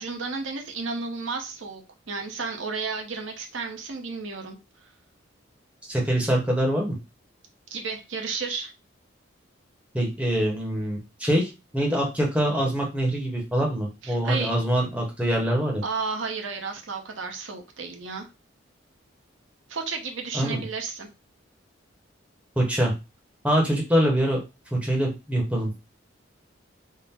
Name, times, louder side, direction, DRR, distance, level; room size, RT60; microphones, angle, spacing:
voice 1, 0.0-4.6 7.7-8.7 14.0-14.5 15.8-18.3 19.7-21.1, right 4 dB, 75° right, 3 dB, 0.8 m, -32 dB
voice 2, 5.9-7.0 9.9-15.8 20.3-20.6 22.6-22.9 23.4-24.4 24.7-25.7, right 1 dB, 5° right, -1 dB, 0.9 m, -24 dB
3.7 x 2.0 x 4.2 m, 0.27 s
head